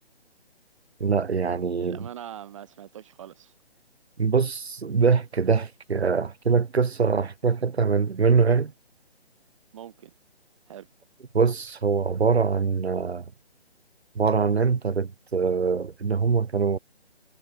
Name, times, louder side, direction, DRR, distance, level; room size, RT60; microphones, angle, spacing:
voice 1, 1.0-2.1 4.2-8.7 11.3-13.2 14.1-16.8, right 5 dB, 75° right, 1.0 m, -23 dB
voice 2, 1.8-3.5 9.7-10.1 10.7-10.9, right 10 dB, 30° right, 1.4 m, -42 dB
figure-of-eight pair, 145°, 32 cm